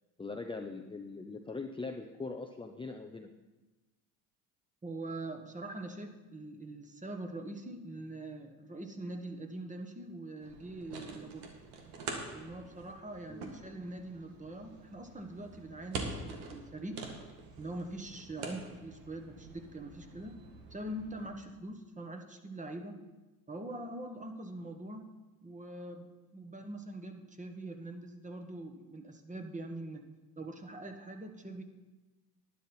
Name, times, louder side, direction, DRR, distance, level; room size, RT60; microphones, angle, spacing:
voice 1, 0.2-3.3 13.3-13.5, left 3 dB, 10° left, 3 dB, 0.7 m, -41 dB
voice 2, 4.8-11.5 12.3-17.0 17.6-20.4 20.7-23.0 23.5-25.1 25.4-26.1 26.3-30.0 30.4-31.6, right 1 dB, 15° right, 5 dB, 1.4 m, -43 dB
sound 1, 10.4-21.3, right 3 dB, 75° right, 1.9 m, -46 dB
11.5 x 10.0 x 4.4 m, 1.1 s
supercardioid pair, 80°, 46 cm